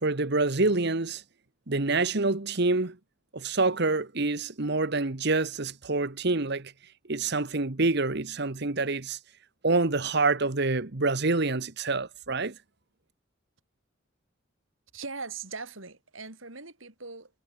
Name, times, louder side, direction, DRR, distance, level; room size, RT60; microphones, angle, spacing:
voice 1, 0.0-1.2 1.7-3.0 3.3-6.7 7.1-9.2 9.6-12.5, right 3 dB, 55° right, 1.4 m, -26 dB
voice 2, 14.9-17.4, right 4 dB, 70° right, 5.1 m, -40 dB
head